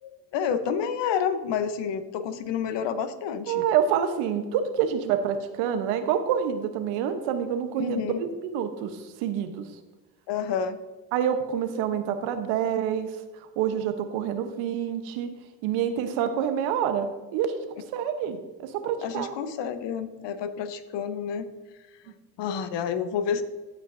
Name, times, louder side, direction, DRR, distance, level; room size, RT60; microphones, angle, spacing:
voice 1, 0.0-3.7 7.8-8.2 10.3-10.8 19.0-21.5 22.4-23.4, left 7 dB, 60° left, 10 dB, 1.0 m, -29 dB
voice 2, 3.5-9.7 11.1-13.2 13.6-15.3 15.6-19.3, right 8 dB, 80° right, 8 dB, 1.1 m, -27 dB
15.5 x 5.8 x 2.6 m, 1.2 s
supercardioid pair, 75°, 47 cm